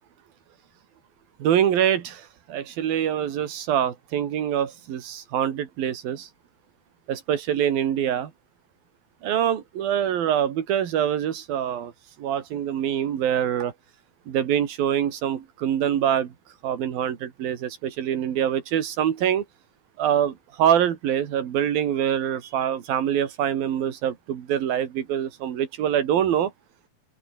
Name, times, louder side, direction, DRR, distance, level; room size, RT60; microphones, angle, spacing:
voice 1, 1.4-6.3 7.1-8.3 9.2-11.9 12.2-13.7 14.3-16.3 16.6-19.5 20.0-26.5, right 9 dB, 85° right, 4.0 m, -25 dB
open air
omnidirectional pair, 4.0 m